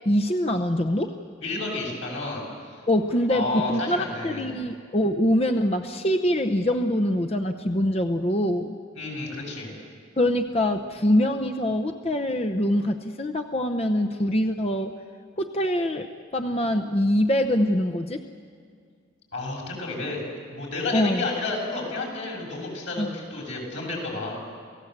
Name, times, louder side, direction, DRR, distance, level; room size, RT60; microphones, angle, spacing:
voice 1, 0.1-1.1 2.9-8.8 10.2-14.9 15.4-18.2 20.9-21.3 23.0-23.1, equal, 30° left, 5 dB, 0.7 m, -24 dB
voice 2, 1.4-2.8 3.3-4.4 9.0-9.7 19.3-20.2 20.5-24.4, left 3 dB, 90° left, -2 dB, 7.3 m, -31 dB
28.0 x 17.0 x 8.1 m, 2.2 s
head